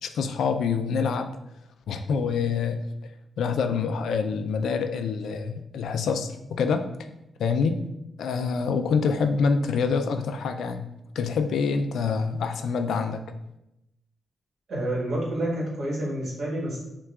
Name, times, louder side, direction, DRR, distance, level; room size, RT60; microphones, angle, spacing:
voice 1, 0.0-1.3 1.9-3.1 3.4-6.9 7.4-7.8 8.2-10.9 11.2-13.2, left 5 dB, 85° left, 7 dB, 0.3 m, -26 dB
voice 2, 14.7-16.8, right 1 dB, 65° right, -4 dB, 1.4 m, -28 dB
5.7 x 2.3 x 2.3 m, 0.88 s
cardioid pair, 95°, 0 cm